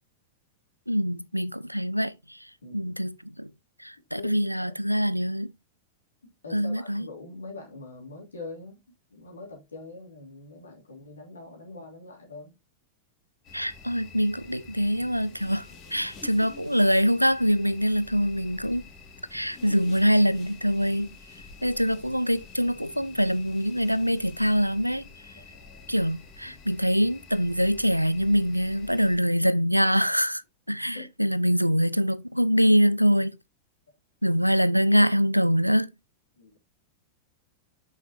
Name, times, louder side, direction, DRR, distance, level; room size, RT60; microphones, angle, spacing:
voice 1, 0.9-2.1 2.7-3.5 3.8-5.5 6.5-7.0 13.5-15.7 15.9-18.8 19.3-21.1 21.6-25.0 25.9-30.4 30.7-33.4 34.2-35.9, equal, 90° right, 0.3 m, -24 dB
voice 2, 2.6-2.9 4.1-4.7 6.2-8.8 9.1-12.6 21.9-22.0 25.4-25.9 26.4-26.6 30.9-31.1 36.4-36.6, left 3 dB, 75° left, 2.9 m, -43 dB
sound 1, 13.4-29.2, left 4 dB, 35° left, 2.2 m, -48 dB
6.2 x 5.6 x 2.9 m
figure-of-eight pair, 90°, 0 cm